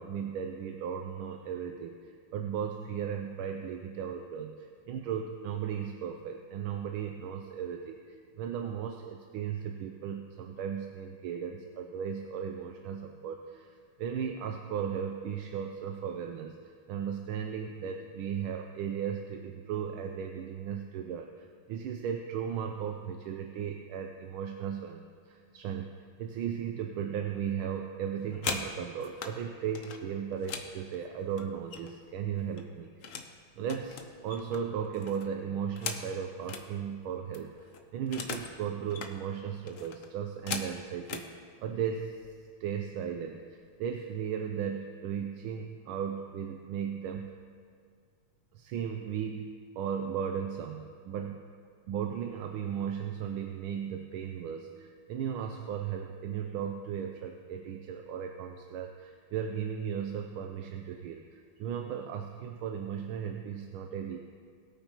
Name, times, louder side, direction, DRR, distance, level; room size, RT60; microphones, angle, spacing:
voice 1, 0.0-13.7 14.0-25.9 26.2-33.1 33.6-42.3 42.6-47.3 48.5-51.4 51.9-64.3, right 8 dB, 80° right, 4 dB, 1.5 m, -36 dB
sound 1, 28.1-29.3 29.7-32.1 32.4-33.3 33.6-36.7 37.0-37.1 37.3-38.5 38.8-39.1 39.7-41.3 42.1-42.3 42.6-43.0 43.3-43.8, left 5 dB, 60° left, 0.8 m, -40 dB
20.0 x 8.9 x 3.0 m, 2.2 s
omnidirectional pair, 2.3 m